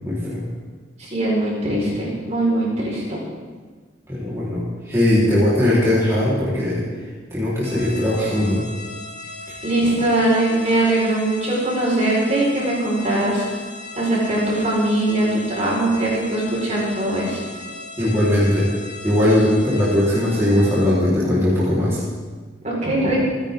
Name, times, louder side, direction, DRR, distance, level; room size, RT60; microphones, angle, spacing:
voice 1, 0.0-0.5 4.1-6.8 7.3-8.6 18.0-18.7 19.0-22.0, left 1 dB, 15° right, -10 dB, 4.1 m, -19 dB
voice 2, 1.1-3.2 9.6-13.4 14.0-17.4 22.6-23.2, right 1 dB, 35° right, -4 dB, 5.0 m, -21 dB
sound 1, 7.6-20.9, left 2 dB, 55° left, 3.9 m, -37 dB
29.5 x 10.5 x 3.8 m, 1.4 s
head